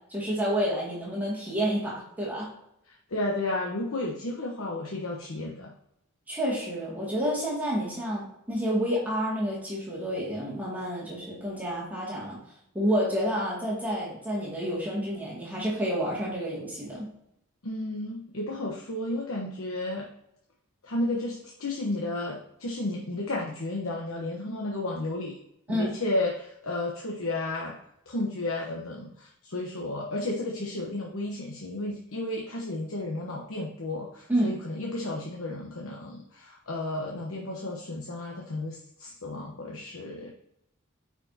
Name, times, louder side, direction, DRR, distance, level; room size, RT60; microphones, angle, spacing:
voice 1, 0.1-2.5 6.3-12.4 12.7-17.1 25.7-26.0 34.3-34.5, equal, 10° right, -7 dB, 2.2 m, -29 dB
voice 2, 2.9-5.7 17.6-20.1 20.8-25.4 25.7-27.8 28.1-40.3, left 2 dB, 75° left, -2 dB, 1.0 m, -33 dB
8.9 x 4.9 x 2.8 m, 0.78 s
head